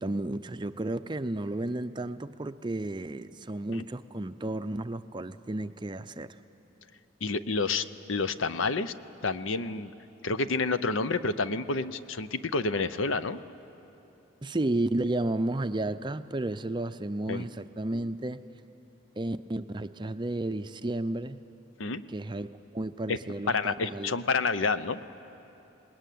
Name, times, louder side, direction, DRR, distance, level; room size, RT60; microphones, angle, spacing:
voice 1, 0.0-6.4 14.4-18.4 19.2-21.4 22.1-24.1, right 2 dB, 20° right, 10 dB, 0.5 m, -32 dB
voice 2, 7.2-8.9 9.2-9.9 10.2-13.4 17.3-17.5 21.8-22.0 23.1-23.2 23.5-25.0, left 4 dB, 70° left, 13 dB, 0.7 m, -29 dB
26.5 x 20.0 x 9.3 m, 2.9 s
head